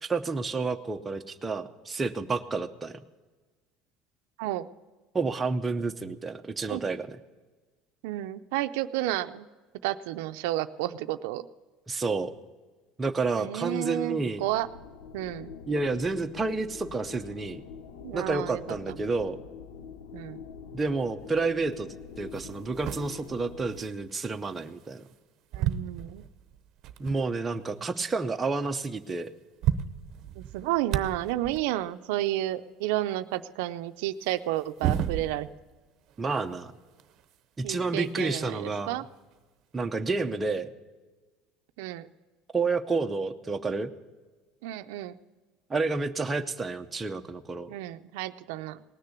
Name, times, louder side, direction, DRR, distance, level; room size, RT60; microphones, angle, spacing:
voice 1, 0.0-3.0 5.1-7.2 11.9-12.3 13.0-14.5 15.7-17.6 18.1-19.4 20.7-21.9 22.2-25.0 27.0-29.3 36.2-36.7 37.6-39.0 39.7-40.7 42.5-43.9 45.7-47.7, right 3 dB, 15° right, 5 dB, 0.6 m, -30 dB
voice 2, 4.4-4.7 6.7-6.8 8.0-9.5 9.8-11.5 13.4-14.7 15.1-15.5 18.0-18.6 18.9-19.0 20.1-20.4 25.5-26.2 30.3-35.5 37.6-39.1 41.8-42.1 44.6-45.2 47.7-48.8, right 15 dB, 85° right, 11 dB, 0.5 m, -31 dB
sound 1, 14.4-23.8, left 6 dB, 85° left, 0.9 m, -45 dB
sound 2, 21.7-21.8 22.3-25.2 25.5-27.3 27.8-27.9 28.1-28.3 29.1-29.2 29.4-31.7 34.2-35.7 36.0-38.3 39.3-39.4 40.4-40.5, right 10 dB, 45° right, 0.8 m, -35 dB
18.5 x 6.7 x 8.2 m, 1.3 s
cardioid pair, 160°, 0 cm